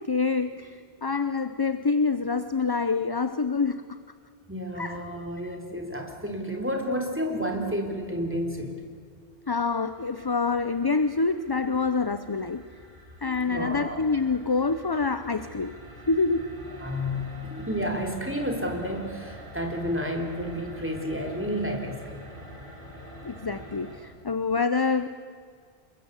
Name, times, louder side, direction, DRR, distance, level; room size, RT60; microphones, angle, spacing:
voice 1, 0.0-4.0 4.7-5.0 5.4-5.6 9.5-12.7 13.2-15.7 16.1-16.5 23.2-25.1, left 4 dB, 25° left, 11 dB, 0.7 m, -26 dB
voice 2, 4.5-8.7 13.2-14.0 16.8-22.2, equal, 10° right, 2 dB, 3.6 m, -31 dB
sound 1, 9.9-24.0, equal, 55° right, 5.6 m, -45 dB
26.5 x 22.5 x 8.4 m, 2.1 s
omnidirectional pair, 1.1 m